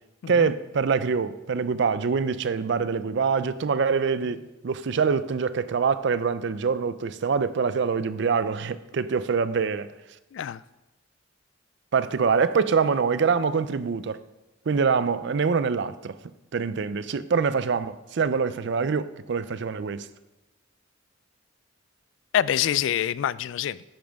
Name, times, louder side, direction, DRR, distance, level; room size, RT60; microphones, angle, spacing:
voice 1, 0.3-9.9 11.9-14.2 14.7-16.2 16.5-20.1, right 5 dB, 60° right, 0.4 m, -25 dB
voice 2, 22.3-23.8, left 10 dB, 70° left, 0.3 m, -26 dB
10.5 x 8.9 x 3.5 m
head